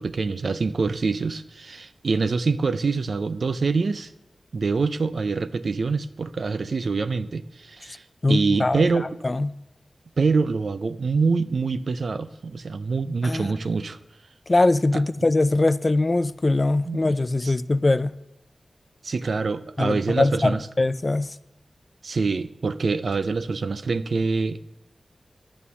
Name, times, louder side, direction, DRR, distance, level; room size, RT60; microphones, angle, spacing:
voice 1, 0.0-4.1 4.5-9.2 10.2-14.0 14.9-15.0 16.8-17.0 17.4-17.5 19.0-20.7 22.0-24.6, right 4 dB, 70° right, 0.5 m, -25 dB
voice 2, 8.2-8.8 9.2-9.5 13.2-13.6 14.5-18.1 19.8-21.4, left 2 dB, 35° left, 0.4 m, -22 dB
11.0 x 8.5 x 5.6 m
wide cardioid pair, 80°, 0 cm